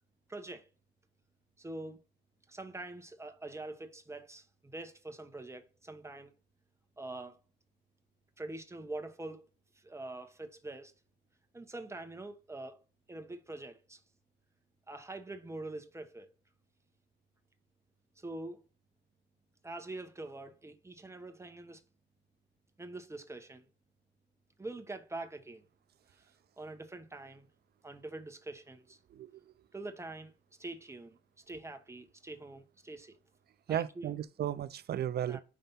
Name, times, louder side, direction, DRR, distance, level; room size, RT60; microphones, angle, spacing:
voice 1, 0.3-0.7 1.6-2.0 2.5-6.3 7.0-7.4 8.4-9.5 9.7-10.9 11.5-12.8 13.1-14.0 14.9-16.3 18.2-18.6 19.6-21.8 22.8-23.7 24.6-25.6 26.6-27.5 27.8-29.0 29.7-30.3 30.6-31.2 31.5-33.2 33.7-34.1 35.3-35.4, right 2 dB, 15° right, 1.0 m, -44 dB
voice 2, 33.7-35.4, right 10 dB, 55° right, 0.5 m, -34 dB
5.7 x 3.4 x 5.4 m
cardioid pair, 90°, 20 cm